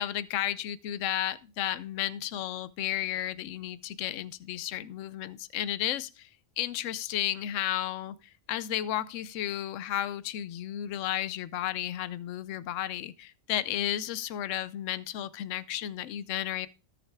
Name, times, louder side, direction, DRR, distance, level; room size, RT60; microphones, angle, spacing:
voice 1, 0.0-6.3 6.6-8.2 8.5-16.7, left 12 dB, 75° left, 0.9 m, -33 dB
19.0 x 6.5 x 2.2 m
omnidirectional pair, 1.3 m